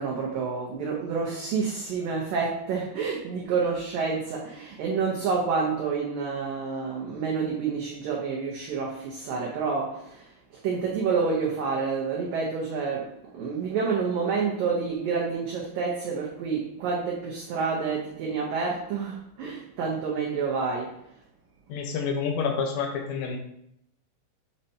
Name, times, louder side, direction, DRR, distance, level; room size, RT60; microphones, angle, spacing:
voice 1, 0.0-10.3 10.6-21.0, right 5 dB, 85° right, -3 dB, 1.9 m, -28 dB
voice 2, 21.7-23.4, left 5 dB, 85° left, 3 dB, 3.0 m, -28 dB
7.6 x 5.4 x 2.8 m, 0.74 s
omnidirectional pair, 5.2 m